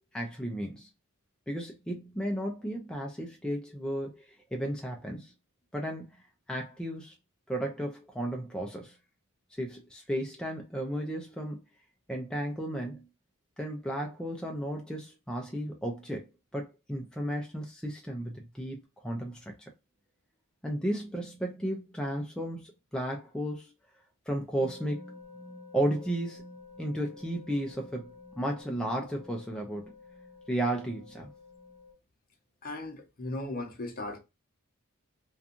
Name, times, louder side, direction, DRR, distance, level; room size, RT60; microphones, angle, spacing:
voice 1, 0.1-0.9 1.5-5.3 5.7-6.1 6.5-7.1 7.5-9.0 9.6-11.6 12.1-13.1 13.6-16.3 16.5-18.8 19.0-19.7 20.6-23.7 24.3-25.1 25.7-26.5 26.8-29.9 30.5-31.3, right 1 dB, 5° left, 0.4 m, -34 dB
sound 1, 24.6-31.9, left 3 dB, 30° right, 0.7 m, -50 dB
voice 2, 32.6-34.2, left 2 dB, 40° left, 0.7 m, -37 dB
2.5 x 2.3 x 2.7 m
head